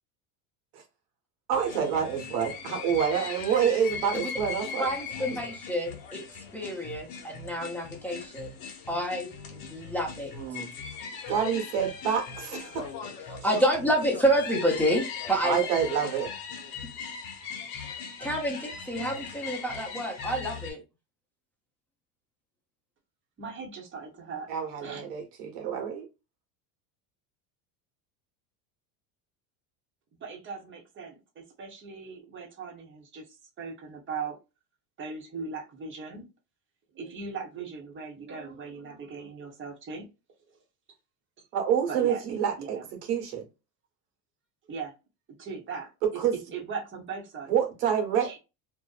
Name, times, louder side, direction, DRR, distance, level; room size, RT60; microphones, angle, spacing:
sound 1, 1.5-20.7, left 6 dB, 50° left, 0.9 m, -39 dB
voice 1, 1.5-4.9 9.7-9.9 10.4-10.7 11.3-12.9 15.4-16.3 24.5-26.1 41.5-42.8 43.1-43.5 46.2-46.3 47.5-48.4, right 8 dB, 85° right, 1.1 m, -27 dB
voice 2, 4.8-6.2 6.5-8.6 8.9-9.3 9.7-10.3 13.3-15.6 18.2-20.8, equal, 5° left, 0.7 m, -28 dB
voice 3, 23.4-24.5 24.8-25.1 30.2-33.3 33.6-34.4 35.0-36.3 36.9-40.1 41.9-42.8 44.7-44.9 45.4-46.2 46.5-47.5 48.2-48.4, right 5 dB, 25° right, 0.8 m, -39 dB
2.5 x 2.1 x 2.4 m
supercardioid pair, 120°, 45 cm